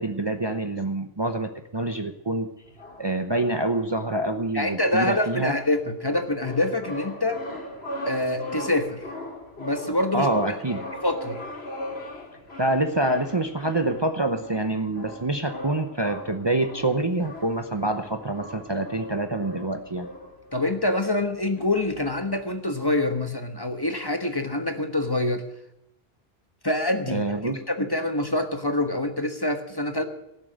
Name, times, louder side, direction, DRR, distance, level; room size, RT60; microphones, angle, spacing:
voice 1, 0.0-2.5 3.0-5.5 10.1-10.9 12.6-20.1 27.1-27.6, right 2 dB, 25° right, 7 dB, 0.8 m, -26 dB
sound 1, 2.6-22.5, left 1 dB, 90° left, 2.8 m, -40 dB
voice 2, 4.5-7.4 8.0-9.0 9.6-10.6 11.0-11.4 20.5-25.5 26.6-27.4 27.7-30.0, left 1 dB, 25° left, 6 dB, 1.3 m, -26 dB
17.5 x 7.6 x 9.1 m, 0.85 s
omnidirectional pair, 1.0 m